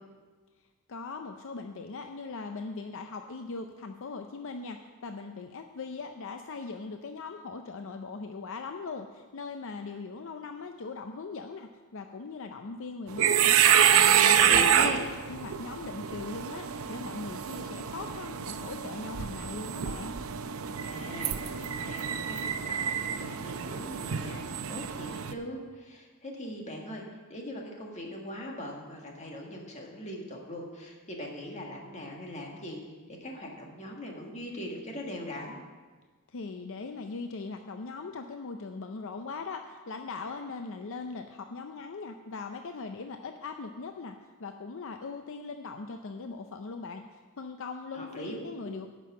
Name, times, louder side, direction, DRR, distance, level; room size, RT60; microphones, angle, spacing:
voice 1, 0.9-14.9 15.3-20.2 36.3-48.9, left 4 dB, 65° left, 6 dB, 0.5 m, -40 dB
sound 1, 13.1-25.3, right 9 dB, 70° right, 0.6 m, -27 dB
voice 2, 14.4-15.1 20.8-27.0 27.3-32.8 33.1-35.6 47.9-48.4 48.6-48.7, left 1 dB, 35° left, 0 dB, 1.8 m, -40 dB
11.0 x 6.2 x 7.5 m, 1.4 s
head